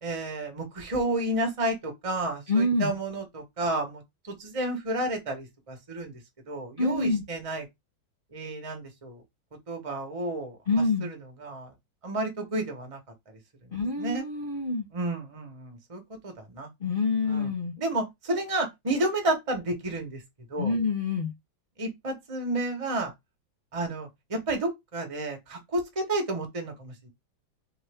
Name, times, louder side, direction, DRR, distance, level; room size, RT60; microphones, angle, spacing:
voice 1, 0.0-6.2 6.5-7.6 8.3-9.2 9.7-10.6 11.0-11.2 11.4-11.7 12.0-13.0 14.0-14.2 14.9-16.7 17.3-17.5 17.8-20.2 20.5-20.7 21.8-23.1 23.7-27.1, right 2 dB, 20° right, 1.0 m, -31 dB
voice 2, 2.5-2.9 6.8-7.2 10.7-11.1 13.7-14.9 16.8-17.7 20.6-21.3, left 3 dB, 45° left, 0.7 m, -26 dB
4.3 x 3.6 x 3.5 m
omnidirectional pair, 2.1 m